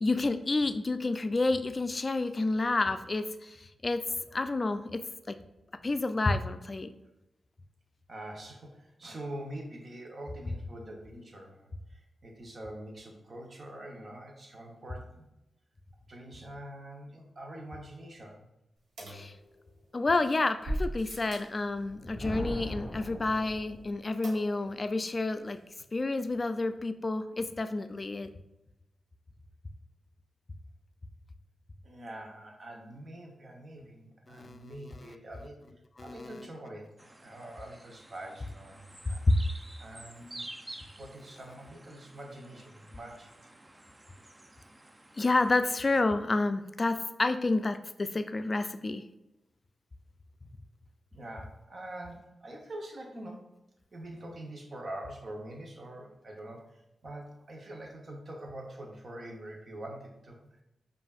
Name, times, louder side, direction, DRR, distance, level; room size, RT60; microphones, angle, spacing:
voice 1, 0.0-4.0 4.3-5.4 5.8-6.9 19.1-19.4 19.9-25.6 25.9-28.3 34.3-35.1 36.0-36.4 39.3-39.4 45.2-49.0, left 2 dB, 40° left, 10 dB, 0.3 m, -29 dB
voice 2, 8.1-15.3 16.1-18.5 31.8-35.6 36.0-39.2 39.8-40.5 41.0-43.3 51.1-53.5 53.9-60.4, right 1 dB, 55° right, 0 dB, 0.9 m, -44 dB
sound 1, 19.0-20.0 20.6-21.6 24.2-24.8 25.1-25.2 25.5-25.6, right 1 dB, 80° right, 1.0 m, -38 dB
Thunder, 21.7-24.1, equal, 15° left, 1.0 m, -40 dB
sound 2, 37.0-46.0, right 1 dB, 25° right, 0.4 m, -50 dB
5.4 x 2.5 x 2.4 m, 0.94 s
cardioid pair, 45°, 0 cm